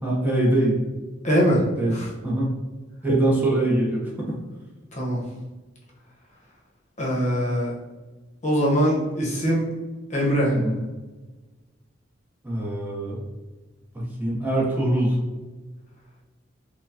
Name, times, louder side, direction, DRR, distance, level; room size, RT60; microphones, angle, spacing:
voice 1, 0.0-0.8 1.8-2.0 2.2-2.5 3.0-4.4 10.5-10.8 12.4-13.2 13.9-15.2, right 1 dB, 10° right, -5 dB, 0.7 m, -23 dB
voice 2, 1.2-1.6 1.9-2.1 4.9-5.2 7.0-7.7 8.4-9.6 10.1-10.6, equal, 40° left, -4 dB, 0.9 m, -22 dB
4.4 x 2.2 x 2.7 m, 1.2 s
head